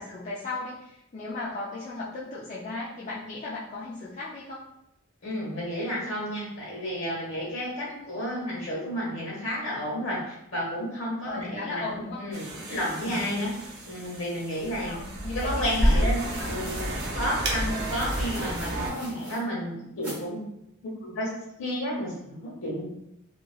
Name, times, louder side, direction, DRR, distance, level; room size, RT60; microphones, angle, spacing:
voice 1, 0.0-4.6 7.9-8.1 8.4-8.5 11.2-12.3 13.0-13.3 14.9-16.7, left 3 dB, 35° left, -8 dB, 0.4 m, -36 dB
voice 2, 5.2-11.8 12.2-13.5 13.8-15.0 15.3-16.2 16.4-20.4 20.8-22.8, equal, 60° left, -4 dB, 1.1 m, -31 dB
sound 1, 12.3-18.9, right 1 dB, 50° right, 0.5 m, -30 dB
sound 2, 15.4-15.5 16.1-17.1 17.7-19.4 20.0-20.2, right 1 dB, 10° right, 0.8 m, -42 dB
2.9 x 2.4 x 2.4 m, 0.81 s
head